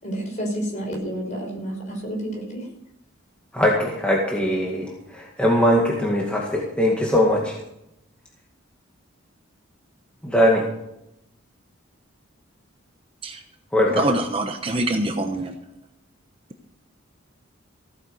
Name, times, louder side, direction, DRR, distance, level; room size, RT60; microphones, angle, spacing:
voice 1, 0.0-2.7, right 1 dB, 35° left, 0 dB, 5.7 m, -30 dB
voice 2, 3.5-7.6 10.2-10.7 13.7-14.1, equal, 5° left, -3 dB, 2.1 m, -21 dB
voice 3, 14.0-15.6, right 2 dB, 25° right, 5 dB, 1.0 m, -24 dB
16.0 x 9.5 x 6.6 m, 0.82 s
head